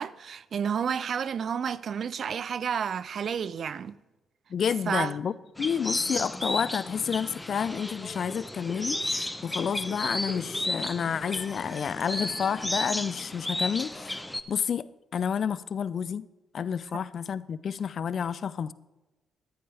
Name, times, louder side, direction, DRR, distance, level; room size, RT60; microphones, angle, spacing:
voice 1, 0.0-4.0 4.9-5.2 16.9-17.0, right 7 dB, 60° right, 0.4 m, -31 dB
voice 2, 4.5-14.9 15.1-16.3 16.5-18.7, left 7 dB, 60° left, 0.4 m, -30 dB
sound 1, 5.6-14.4, left 1 dB, 10° left, 0.8 m, -33 dB
13.5 x 10.0 x 3.4 m
hypercardioid pair, 50°, 0 cm